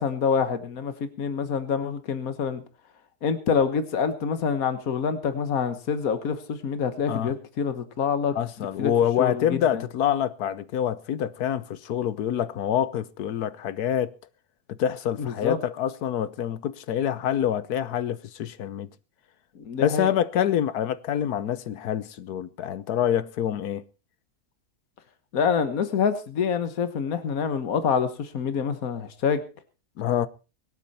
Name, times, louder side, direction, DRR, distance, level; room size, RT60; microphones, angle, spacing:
voice 1, 0.0-2.6 3.2-8.3 8.8-8.9 9.2-9.6 15.2-15.6 19.5-20.1 25.3-29.4, left 6 dB, 70° left, 1.8 m, -26 dB
voice 2, 8.3-14.2 14.7-18.9 19.8-23.9 30.0-30.3, left 10 dB, 85° left, 1.4 m, -26 dB
24.0 x 9.1 x 4.3 m
omnidirectional pair, 1.6 m